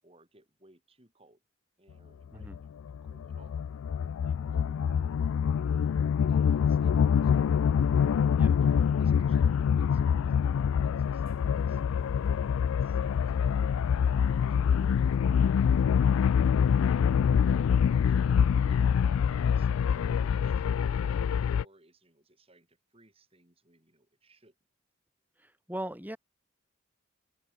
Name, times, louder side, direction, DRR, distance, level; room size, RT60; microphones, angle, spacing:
voice 1, 0.0-1.4 1.8-2.7 3.0-3.6 4.2-7.0 7.2-7.4 8.6-13.8 14.2-14.8 15.1-16.2 18.1-24.5, right 2 dB, 25° right, 6.5 m, -62 dB
sound 1, 2.4-21.6, left 7 dB, 80° left, 0.3 m, -25 dB
sound 2, 10.2-15.2, right 1 dB, 75° right, 5.3 m, -61 dB
voice 2, 25.4-26.2, right 1 dB, 10° right, 2.6 m, -40 dB
open air
head